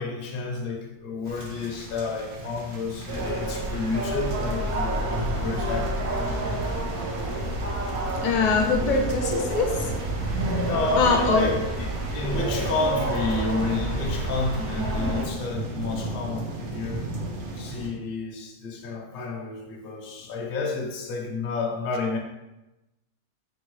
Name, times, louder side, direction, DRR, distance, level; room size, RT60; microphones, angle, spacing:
voice 1, 0.0-6.1 10.6-11.9 12.1-17.1 17.5-22.2, left 3 dB, 55° left, 0.6 m, -30 dB
sound 1, 1.3-17.9, right 1 dB, 60° right, 0.9 m, -36 dB
sound 2, 3.1-15.3, right 1 dB, 80° right, 1.3 m, -29 dB
voice 2, 6.5-6.9 8.1-10.0 11.0-11.5, left 4 dB, 70° left, 1.0 m, -24 dB
4.0 x 3.3 x 3.1 m
omnidirectional pair, 1.6 m